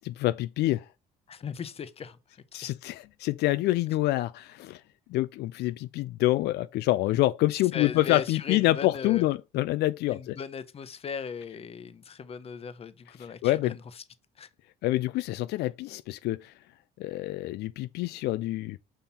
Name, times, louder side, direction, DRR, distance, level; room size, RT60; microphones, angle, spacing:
voice 1, 0.0-0.8 2.5-4.8 5.1-10.4 13.4-13.7 14.8-16.5 17.0-18.8, left 16 dB, 75° left, 0.4 m, -27 dB
voice 2, 1.3-2.7 7.7-9.3 10.1-14.0 14.4-14.5, left 6 dB, 35° left, 0.8 m, -38 dB
5.6 x 5.5 x 4.3 m
cardioid pair, 110°, 17 cm